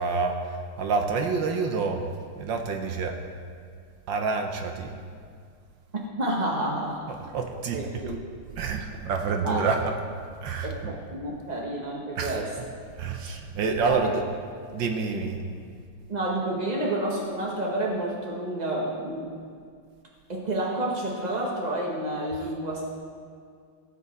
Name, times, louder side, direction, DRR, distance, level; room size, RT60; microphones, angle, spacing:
voice 1, 0.0-2.0 2.4-3.2 4.1-4.9 7.1-8.1 8.5-10.0 10.4-10.9 12.2-12.4 13.0-14.3 14.7-15.4, right 4 dB, 65° right, 4 dB, 1.3 m, -28 dB
voice 2, 6.2-7.1 7.7-8.2 9.4-9.6 10.6-12.5 13.9-14.1 15.1-15.2 16.1-19.3 20.3-23.0, right 1 dB, 45° right, -2 dB, 0.5 m, -29 dB
16.5 x 6.9 x 4.1 m, 2.2 s
omnidirectional pair, 2.4 m